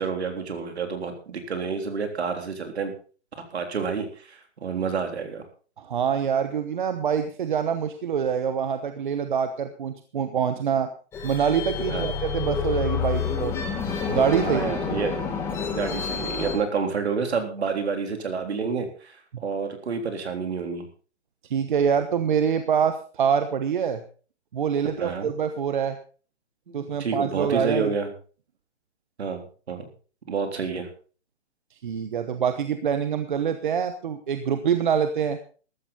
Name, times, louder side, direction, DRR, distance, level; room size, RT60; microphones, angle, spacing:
voice 1, 0.0-2.9 3.5-5.4 11.9-12.1 14.4-15.3 15.7-20.9 25.0-25.3 26.7-28.1 29.2-29.9 30.3-30.9, right 5 dB, 65° right, 5 dB, 3.8 m, -29 dB
voice 2, 5.8-10.9 11.2-13.6 14.1-15.0 19.3-19.4 21.5-24.0 24.5-26.0 26.7-27.9 31.8-35.4, right 7 dB, 45° right, 9 dB, 1.1 m, -25 dB
sound 1, 11.1-16.6, left 6 dB, 5° left, 1.4 m, -28 dB
14.5 x 13.0 x 4.1 m, 0.39 s
hypercardioid pair, 170°, 35 cm